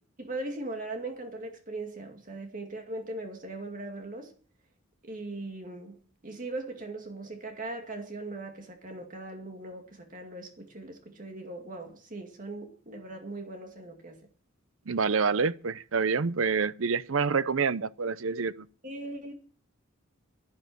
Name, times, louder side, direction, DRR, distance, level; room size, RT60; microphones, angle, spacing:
voice 1, 0.2-4.3 5.0-14.2 18.8-19.3, right 2 dB, 40° right, 2.2 m, -39 dB
voice 2, 14.9-18.7, right 5 dB, 70° right, 0.7 m, -27 dB
12.0 x 12.0 x 6.3 m
head